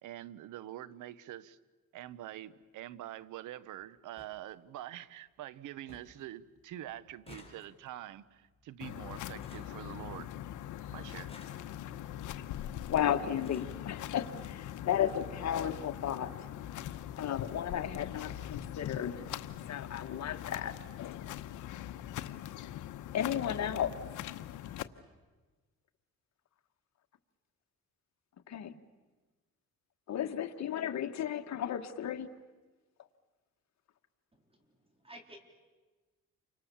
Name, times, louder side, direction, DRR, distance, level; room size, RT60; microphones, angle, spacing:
voice 1, 0.0-1.6 1.9-10.3 10.9-11.4, right 13 dB, 85° right, 17 dB, 1.0 m, -45 dB
sound 1, 2.0-2.2 3.5-3.6 3.8-3.9 4.2-4.4 4.8-5.3 5.6-5.7 5.9-6.3 6.5-10.5 11.1-12.1 12.9-13.0 13.3-13.8 14.8-14.9 15.2-15.4 15.7-15.8, left 3 dB, 20° left, 4.8 m, -57 dB
sound 2, 8.8-24.8, left 11 dB, 85° left, 1.0 m, -42 dB
voice 2, 12.9-16.5 17.2-19.2 19.7-20.7 23.1-23.9 28.5-28.7 30.1-32.3, left 9 dB, 60° left, 7 dB, 1.6 m, -34 dB
voice 3, 34.3-35.4, right 1 dB, 20° right, 3 dB, 4.1 m, -54 dB
29.5 x 25.5 x 7.1 m, 1.3 s
cardioid pair, 90°, 30 cm